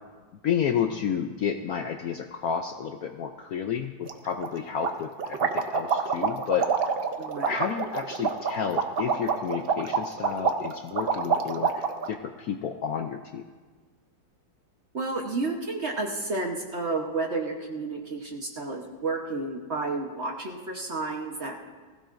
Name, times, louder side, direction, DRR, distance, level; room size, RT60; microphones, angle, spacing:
voice 1, 0.4-6.7 7.5-13.4, left 8 dB, 70° left, 5 dB, 0.9 m, -31 dB
sound 1, 4.1-4.2 4.4-4.5 4.8-12.1, right 6 dB, 85° right, 0.5 m, -27 dB
voice 2, 7.2-7.5 14.9-21.7, right 3 dB, 45° right, 1 dB, 1.1 m, -31 dB
20.0 x 15.5 x 2.6 m, 1.4 s
omnidirectional pair, 2.0 m